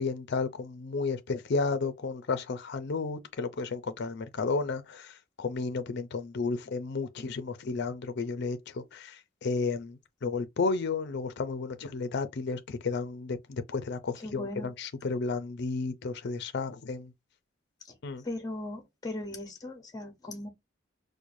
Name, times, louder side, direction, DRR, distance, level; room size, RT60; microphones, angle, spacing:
voice 1, 0.0-17.1 18.0-18.2, left 4 dB, 60° left, 0.5 m, -32 dB
voice 2, 14.2-14.7 17.9-18.0 18.2-20.5, left 1 dB, 20° left, 0.8 m, -38 dB
4.6 x 2.1 x 2.6 m
head